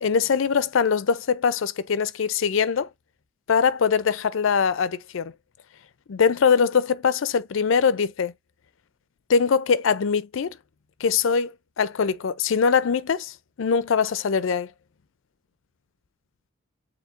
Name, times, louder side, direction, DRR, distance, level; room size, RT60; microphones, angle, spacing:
voice 1, 0.0-2.9 3.5-5.3 6.1-8.3 9.3-10.5 11.0-11.5 11.8-14.7, left 6 dB, 70° left, 0.4 m, -22 dB
7.2 x 2.7 x 2.5 m
head